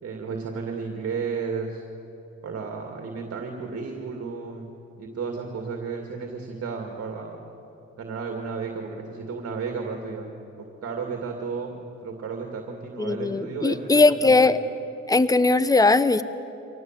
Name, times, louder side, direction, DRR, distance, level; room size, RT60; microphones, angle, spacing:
voice 1, 0.0-1.8 2.4-4.7 5.0-7.4 8.0-10.3 10.8-14.5, right 5 dB, 50° right, 2 dB, 2.4 m, -33 dB
voice 2, 13.0-14.6 15.1-16.2, left 3 dB, 10° left, 14 dB, 0.8 m, -19 dB
24.5 x 19.0 x 7.6 m, 3.0 s
cardioid pair, 90°, 30 cm